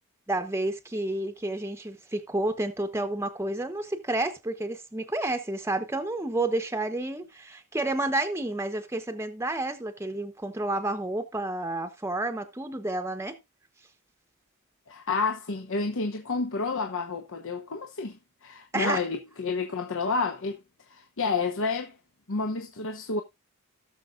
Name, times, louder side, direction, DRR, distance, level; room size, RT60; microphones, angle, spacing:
voice 1, 0.3-13.4 18.7-19.0, right 2 dB, 10° right, 0.9 m, -30 dB
voice 2, 14.9-20.6 20.9-21.9 22.3-23.2, left 4 dB, 60° left, 1.0 m, -30 dB
17.5 x 6.6 x 2.4 m
head